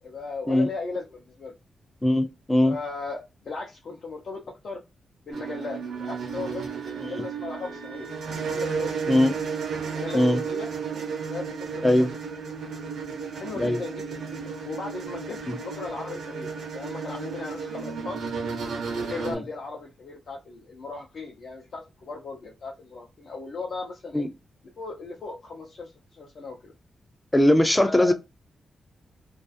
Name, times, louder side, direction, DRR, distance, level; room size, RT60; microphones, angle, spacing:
voice 1, 0.0-1.5 2.6-4.8 5.3-8.1 8.4-9.0 9.9-10.7 11.3-12.0 13.3-18.2 18.9-24.2 24.8-26.7 27.8-28.1, left 3 dB, 60° left, 0.6 m, -37 dB
voice 2, 2.0-2.8 7.0-7.1 9.1-9.4 10.1-10.4 11.8-12.1 13.6-13.8 15.5-15.6 19.3-19.4 24.1-24.3 27.3-28.1, left 1 dB, 10° left, 0.4 m, -20 dB
sound 1, 5.3-19.3, right 5 dB, 85° right, 0.6 m, -33 dB
2.4 x 2.4 x 2.4 m
wide cardioid pair, 125°, 0 cm